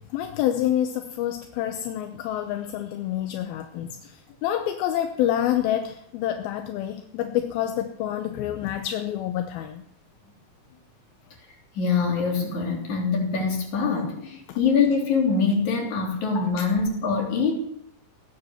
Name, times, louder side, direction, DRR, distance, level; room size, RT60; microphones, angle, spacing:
voice 1, 0.1-9.8 14.5-14.6, left 11 dB, 75° left, 7 dB, 2.5 m, -27 dB
voice 2, 11.7-17.5, left 5 dB, 50° left, 0 dB, 4.4 m, -24 dB
17.5 x 9.8 x 7.0 m, 0.73 s
omnidirectional pair, 4.7 m